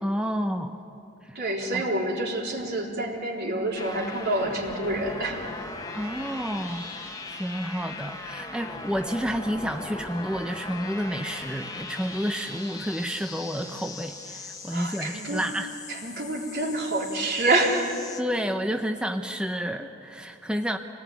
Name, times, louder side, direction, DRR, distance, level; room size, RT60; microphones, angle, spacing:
voice 1, 0.0-0.8 1.2-1.4 1.7-1.8 5.9-6.9 7.3-15.7 18.2-20.8, equal, 5° right, 5 dB, 0.7 m, -30 dB
voice 2, 1.4-5.5 14.7-15.4 15.9-17.9, right 2 dB, 55° right, -1 dB, 3.8 m, -27 dB
sound 1, 3.7-18.2, left 3 dB, 20° left, 1.5 m, -39 dB
26.5 x 18.5 x 9.3 m, 2.8 s
head